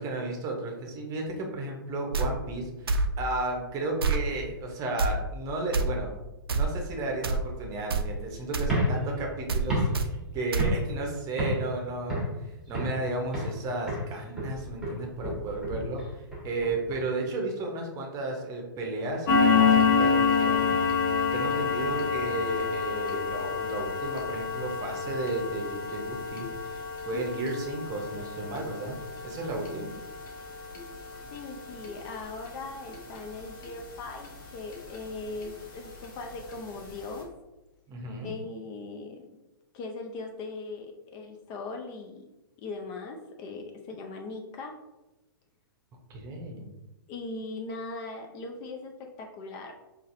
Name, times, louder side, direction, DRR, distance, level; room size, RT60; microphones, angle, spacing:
voice 1, 0.0-6.2 6.5-10.1 10.3-20.7 21.3-26.8 27.0-29.0 29.2-29.9 37.9-38.3 46.1-46.7, right 2 dB, 30° right, 1 dB, 0.8 m, -33 dB
sound 1, 2.1-2.3 2.9-3.1 4.0-4.2 5.0-5.1 5.7-5.8 6.5-6.7 7.2-7.4 7.9-8.1 8.5-8.7 9.5-9.7 9.9-10.1 10.5-10.7, right 4 dB, 85° right, 0.4 m, -26 dB
sound 2, 8.6-11.1 11.4-11.7 12.1-13.0 13.3-13.6 13.9-17.0, equal, 5° right, 1.4 m, -31 dB
sound 3, 19.3-34.4 34.7-35.0 35.4-35.5 35.9-36.0 36.5-36.6 36.9-37.0, left 5 dB, 60° left, 0.9 m, -28 dB
voice 2, 27.1-27.5 31.3-37.3 38.2-39.3 39.7-42.3 42.6-44.8 47.1-49.7, left 3 dB, 35° left, 3 dB, 0.4 m, -39 dB
3.9 x 2.5 x 2.6 m, 1.0 s
hypercardioid pair, 120°, 12 cm